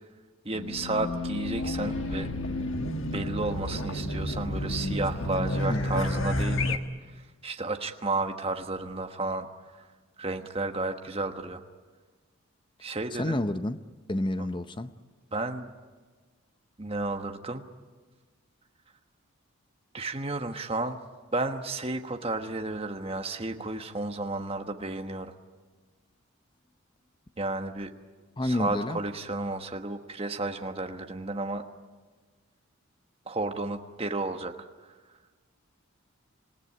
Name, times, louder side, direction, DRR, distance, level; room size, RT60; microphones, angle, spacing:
voice 1, 0.4-2.3 3.1-6.8 7.1-9.5 9.7-9.9 10.2-11.6 12.8-13.4 15.3-15.7 16.8-17.7 19.9-21.0 21.3-25.3 27.4-27.9 28.4-31.6 33.3-34.5, right 2 dB, 25° right, 1.3 m, -32 dB
Race car auto racing / Alarm, 0.5-6.8, left 1 dB, 60° left, 1.4 m, -30 dB
voice 2, 5.7-6.1 13.2-13.8 14.1-14.9 28.4-29.0, left 1 dB, 20° left, 0.6 m, -30 dB
26.5 x 17.0 x 9.7 m
head